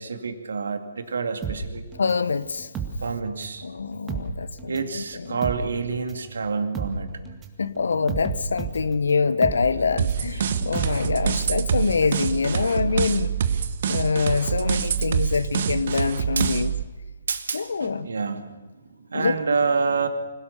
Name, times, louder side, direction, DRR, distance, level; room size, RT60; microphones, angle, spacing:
voice 1, 0.0-1.8 3.0-3.7 4.7-7.1 10.6-10.7 12.0-12.1 16.4-16.5 17.3-20.1, right 5 dB, 70° right, 2.3 m, -28 dB
sound 1, 1.4-3.6 3.9-11.6 11.9-12.0, right 4 dB, 15° right, 2.1 m, -33 dB
voice 2, 2.0-2.7 3.6-5.4 7.6-13.4 13.8-16.7 17.5-18.1 19.1-19.4, left 5 dB, 70° left, 1.0 m, -25 dB
sound 2, 10.0-16.8, right 7 dB, 55° right, 1.2 m, -25 dB
25.5 x 17.0 x 6.8 m
figure-of-eight pair, 135°, 0 cm